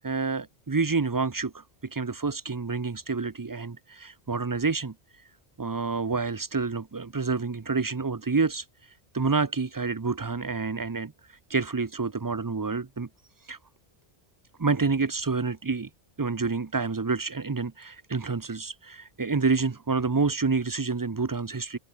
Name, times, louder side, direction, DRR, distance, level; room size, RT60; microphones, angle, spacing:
voice 1, 0.0-5.3 5.6-13.1 13.4-13.6 14.6-15.9 16.2-21.8, right 4 dB, 25° right, 0.5 m, -28 dB
open air
omnidirectional pair, 1.1 m